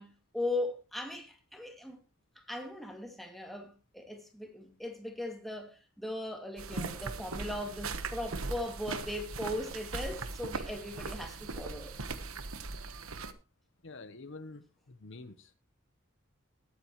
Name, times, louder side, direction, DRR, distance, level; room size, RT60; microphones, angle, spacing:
voice 1, 0.0-2.0 2.4-12.0, left 1 dB, ahead, 2.2 m, -39 dB
sound 1, 6.6-13.3, right 3 dB, 85° right, 1.2 m, -39 dB
voice 2, 13.8-15.5, left 3 dB, 60° left, 0.9 m, -48 dB
21.0 x 9.1 x 3.0 m
head